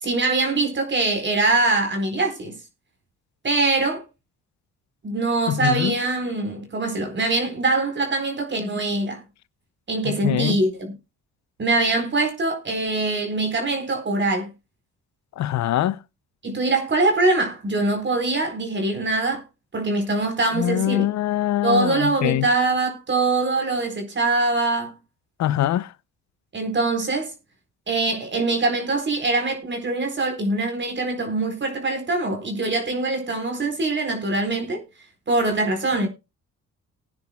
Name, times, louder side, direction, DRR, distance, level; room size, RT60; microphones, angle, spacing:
voice 1, 0.0-2.5 3.4-4.0 5.0-9.2 9.9-10.9 11.6-14.5 16.4-19.4 19.7-21.1 21.6-24.9 26.5-27.3 27.9-34.8 35.3-36.1, right 2 dB, 40° right, 4.3 m, -23 dB
voice 2, 5.5-6.0 10.0-10.6 15.4-16.0 20.5-22.5 25.4-25.9, left 13 dB, 65° left, 0.6 m, -23 dB
20.5 x 9.6 x 2.3 m
cardioid pair, 90°, 30 cm